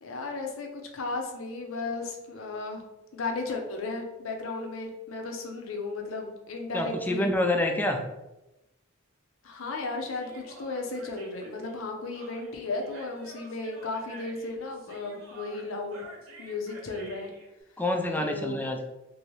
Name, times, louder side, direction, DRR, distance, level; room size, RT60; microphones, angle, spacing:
voice 1, 0.0-2.8 3.1-7.3 9.4-16.0 16.4-17.3 18.2-18.9, left 3 dB, 80° left, 2 dB, 0.6 m, -35 dB
voice 2, 6.7-8.0 17.8-18.9, left 1 dB, 10° left, 4 dB, 0.3 m, -27 dB
Human voice, 10.1-17.5, right 2 dB, 75° right, 0.8 m, -49 dB
2.7 x 2.6 x 3.1 m, 0.98 s
head